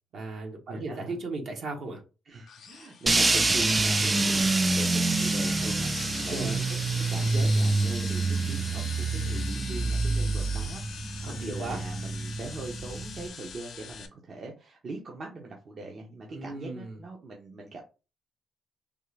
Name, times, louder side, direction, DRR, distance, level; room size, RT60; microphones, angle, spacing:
voice 1, 0.1-2.0 4.0-4.3 6.2-6.6 11.2-11.8 16.3-17.0, right 3 dB, 60° right, 2 dB, 1.1 m, -36 dB
voice 2, 0.7-1.2 2.2-6.8 7.1-10.8 11.3-17.8, right 3 dB, 45° right, 0 dB, 0.8 m, -41 dB
sound 1, 2.5-14.1, left 7 dB, 65° left, 0.7 m, -42 dB
sound 2, 3.1-13.3, right 3 dB, 25° right, 0.4 m, -27 dB
3.6 x 2.4 x 3.3 m, 0.31 s
cardioid pair, 95°, 0 cm